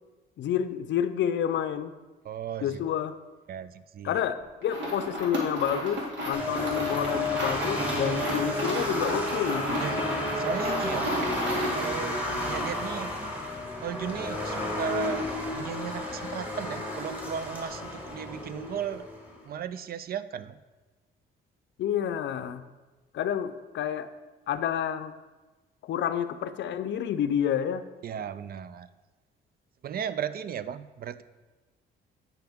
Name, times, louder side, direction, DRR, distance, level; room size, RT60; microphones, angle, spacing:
voice 1, 0.4-1.9 2.6-3.1 4.0-9.8 21.8-22.6 23.1-24.1 24.5-25.1 25.8-27.8, left 9 dB, 65° left, 11 dB, 0.5 m, -29 dB
voice 2, 2.2-2.8 3.5-4.3 9.8-10.0 10.3-11.2 11.7-13.1 13.8-15.3 15.5-19.1 19.4-20.6 28.0-28.9 29.8-31.2, right 8 dB, 50° right, 15 dB, 0.4 m, -35 dB
sound 1, 4.6-11.9, equal, 70° right, 2.1 m, -32 dB
sound 2, 6.3-19.4, left 1 dB, 10° right, 2.1 m, -32 dB
9.0 x 5.8 x 3.5 m, 1.2 s
cardioid pair, 90°, 20 cm